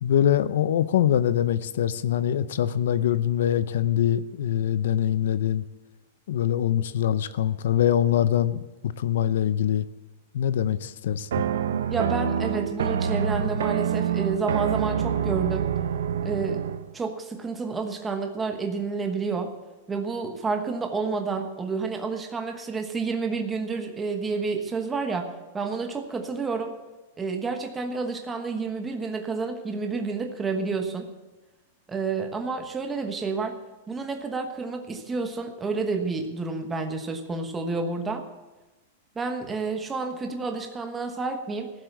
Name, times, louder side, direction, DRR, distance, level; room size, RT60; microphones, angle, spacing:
voice 1, 0.0-5.6 6.3-9.9 10.3-11.3, left 10 dB, 75° left, 14 dB, 0.6 m, -23 dB
sound 1, 11.3-16.9, right 8 dB, 85° right, 0.7 m, -26 dB
voice 2, 11.9-15.7 16.2-16.6 16.9-19.5 19.9-26.7 27.2-31.1 31.9-33.6 33.9-38.3 39.1-41.7, right 4 dB, 15° right, 5 dB, 1.2 m, -29 dB
14.5 x 7.6 x 8.3 m, 1.1 s
hypercardioid pair, 145°, 0 cm